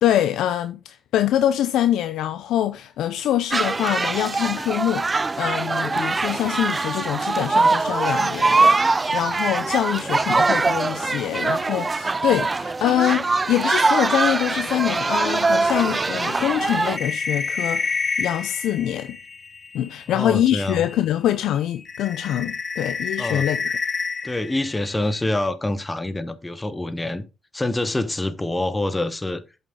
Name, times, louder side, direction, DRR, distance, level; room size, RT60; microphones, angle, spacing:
voice 1, 0.0-19.2 19.7-23.8, left 11 dB, 85° left, 0.6 m, -24 dB
sound 1, 3.5-17.0, right 3 dB, 25° right, 0.3 m, -22 dB
sound 2, 14.2-21.1 21.4-25.4, left 5 dB, 35° left, 0.6 m, -31 dB
voice 2, 20.1-20.8 23.2-23.4 24.2-27.2 27.5-29.4, left 1 dB, 15° left, 1.1 m, -26 dB
8.3 x 7.2 x 3.8 m
cardioid pair, 90°, 0 cm